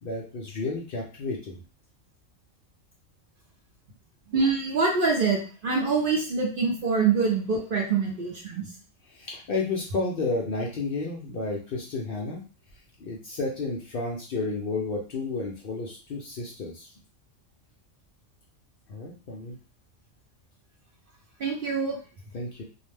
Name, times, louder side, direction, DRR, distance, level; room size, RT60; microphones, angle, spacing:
voice 1, 0.0-1.6 9.1-12.4 13.0-16.9 18.9-19.6 22.3-22.6, left 3 dB, 60° left, -2 dB, 0.6 m, -31 dB
voice 2, 4.3-8.6 21.4-22.0, right 4 dB, 55° right, -1 dB, 0.7 m, -25 dB
2.4 x 2.0 x 3.2 m, 0.38 s
omnidirectional pair, 1.3 m